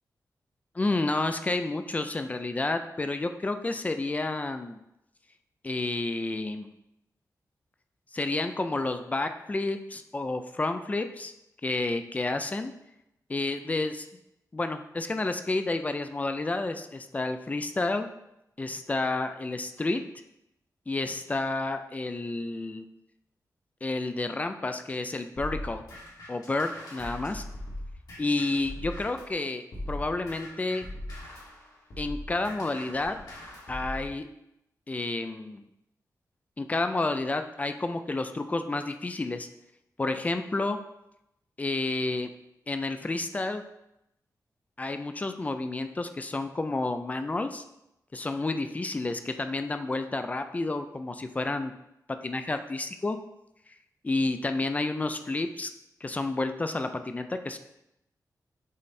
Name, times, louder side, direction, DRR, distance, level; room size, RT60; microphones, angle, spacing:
voice 1, 0.7-4.8 5.6-6.7 8.1-11.3 11.6-12.7 13.3-14.1 14.5-18.1 18.6-20.0 20.9-22.8 23.8-25.8 26.3-27.4 28.2-30.8 32.0-33.2 33.7-34.3 34.9-35.6 36.6-39.5 40.0-40.8 41.6-42.3 42.7-43.6 44.8-47.6 48.1-51.7 52.2-53.2 54.0-55.7 56.0-57.6, left 2 dB, 20° left, 8 dB, 0.4 m, -30 dB
sound 1, 25.4-29.3 29.7-34.1, left 1 dB, 75° left, 2.4 m, -40 dB
7.2 x 3.3 x 4.2 m, 0.84 s
wide cardioid pair, 155°, 7 cm